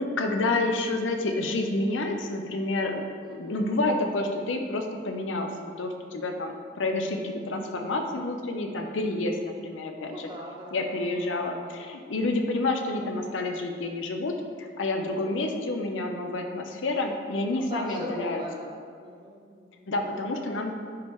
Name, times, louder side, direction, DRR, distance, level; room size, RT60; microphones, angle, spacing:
voice 1, 0.0-3.0 3.4-10.3 10.7-18.4 19.9-20.7, left 2 dB, 90° left, 4 dB, 0.6 m, -29 dB
voice 2, 3.2-3.6 7.8-8.0 10.1-10.8 15.0-15.3 17.4-20.6, equal, 25° right, -1 dB, 0.7 m, -41 dB
9.3 x 3.6 x 3.1 m, 2.1 s
head